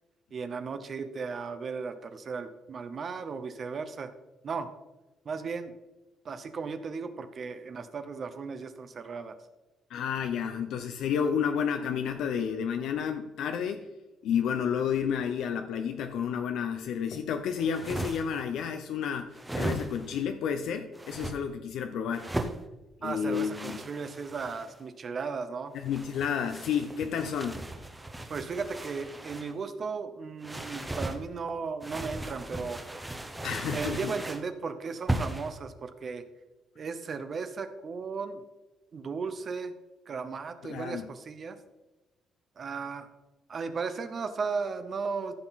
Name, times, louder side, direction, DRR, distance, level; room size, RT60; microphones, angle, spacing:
voice 1, 0.3-4.1 4.4-4.7 5.2-5.7 6.2-9.4 23.0-25.7 28.3-32.8 33.7-36.2 36.8-38.4 38.9-39.7 40.1-41.6 42.6-43.1 43.5-45.3, right 5 dB, 40° right, 9 dB, 0.8 m, -36 dB
voice 2, 9.9-13.8 14.2-22.3 23.0-23.8 25.7-27.6 33.4-34.0 40.6-41.1, left 7 dB, 75° left, 7 dB, 0.7 m, -31 dB
sound 1, 17.6-18.4 19.3-20.2 20.9-21.4 22.1-22.6 23.3-24.8 25.7-29.5 30.4-31.2 31.8-34.5 35.1-35.5, right 1 dB, 10° right, 0.9 m, -37 dB
14.5 x 6.0 x 4.1 m, 1.1 s
cardioid pair, 145°, 0 cm